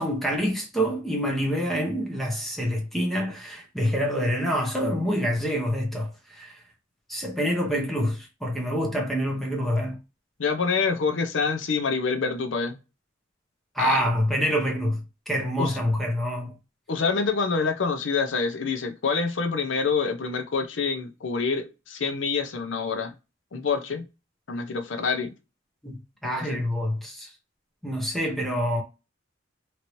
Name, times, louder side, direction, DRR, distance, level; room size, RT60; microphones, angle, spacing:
voice 1, 0.0-6.6 7.1-10.0 13.7-16.5 25.8-26.0 26.2-27.3 27.8-28.8, equal, ahead, 0.7 m, -26 dB
voice 2, 10.4-12.8 13.8-14.0 15.6-15.8 16.9-23.1 23.5-24.1 24.5-25.3 26.2-26.6, left 5 dB, 75° left, 0.6 m, -26 dB
3.0 x 2.6 x 2.9 m
head